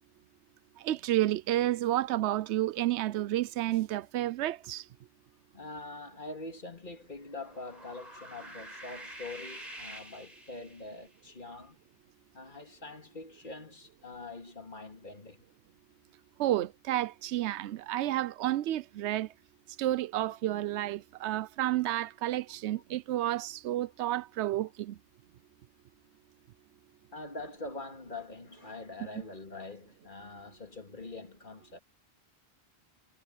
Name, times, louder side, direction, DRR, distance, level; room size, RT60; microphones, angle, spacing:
voice 1, 0.8-4.8 16.4-19.3 19.8-25.0, right 14 dB, 85° right, 0.9 m, -30 dB
voice 2, 5.5-11.8 12.3-15.5 27.1-31.8, left 2 dB, 45° left, 2.8 m, -44 dB
sound 1, 7.3-11.1, right 1 dB, 35° right, 7.4 m, -47 dB
omnidirectional pair, 1.1 m